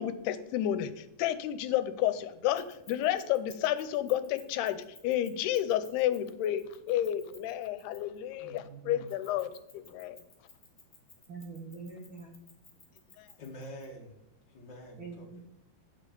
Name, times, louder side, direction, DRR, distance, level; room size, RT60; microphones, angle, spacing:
voice 1, 0.0-10.2 13.2-13.3, left 12 dB, 90° left, 12 dB, 2.7 m, -31 dB
Keys jangling, 2.5-8.2 9.1-13.8, left 4 dB, 20° left, 1.8 m, -56 dB
voice 2, 8.4-9.1 11.3-12.4 15.0-15.4, right 4 dB, 80° right, 0 dB, 1.1 m, -45 dB
voice 3, 13.4-14.1 14.5-15.4, equal, 45° left, 0 dB, 1.7 m, -46 dB
8.7 x 6.5 x 6.8 m, 0.88 s
omnidirectional pair, 4.6 m